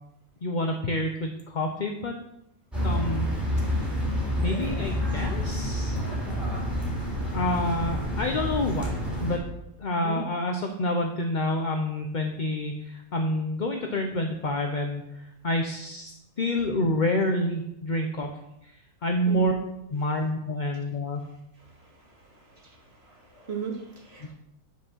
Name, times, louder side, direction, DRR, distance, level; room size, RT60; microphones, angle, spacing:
voice 1, 0.4-2.1 2.8-3.3 4.4-6.1 7.3-9.4 9.8-18.3 18.6-18.7 19.0-19.5 19.9-21.2 24.2-24.3, left 1 dB, 40° left, 3 dB, 0.7 m, -28 dB
sound 1, 2.7-9.4, equal, ahead, 3.4 m, -28 dB
voice 2, 19.3-19.6 22.6-22.8 23.0-24.3, right 5 dB, 45° right, -1 dB, 2.0 m, -36 dB
10.5 x 5.1 x 6.2 m, 0.84 s
omnidirectional pair, 1.6 m